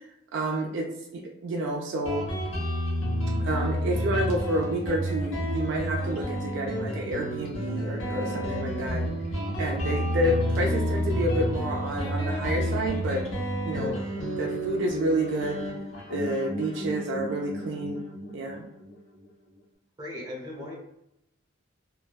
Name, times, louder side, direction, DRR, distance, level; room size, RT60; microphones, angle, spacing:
voice 1, 0.3-2.3 3.4-9.1 9.6-13.2 13.6-14.0 14.4-15.6 16.1-18.0 18.3-18.6, right 1 dB, 60° right, 1 dB, 0.3 m, -29 dB
Guitar, 2.1-19.3, equal, 65° left, 0.7 m, -30 dB
voice 2, 20.0-20.8, left 1 dB, 20° right, -2 dB, 0.6 m, -37 dB
2.5 x 2.2 x 2.2 m, 0.82 s
head